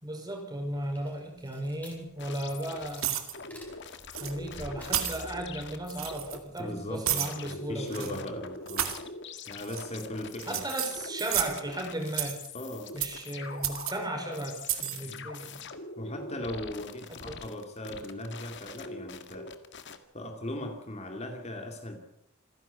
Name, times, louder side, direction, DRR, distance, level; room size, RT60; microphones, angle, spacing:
voice 1, 0.0-3.2 4.2-8.2 10.5-12.4 12.9-15.6 17.1-17.4, right 1 dB, 20° right, 3 dB, 5.4 m, -36 dB
sound 1, 0.7-7.3, left 1 dB, 5° left, 5.0 m, -51 dB
sound 2, 2.2-6.6 7.2-20.0, left 4 dB, 55° left, 1.8 m, -44 dB
sound 3, 2.9-3.3 4.1-4.3 4.8-5.2 5.9-6.4 7.0-7.3 7.9-8.1 8.7-9.0 9.6-10.0 10.4-11.6 12.1-12.5 13.0-13.2 13.6-13.9 14.6-15.0, right 11 dB, 70° right, 2.5 m, -32 dB
voice 2, 6.6-8.9 9.5-10.7 12.5-12.9 15.1-15.3 16.0-19.5 20.1-22.0, left 1 dB, 30° left, 4 dB, 2.4 m, -38 dB
27.5 x 11.0 x 8.5 m, 0.77 s
head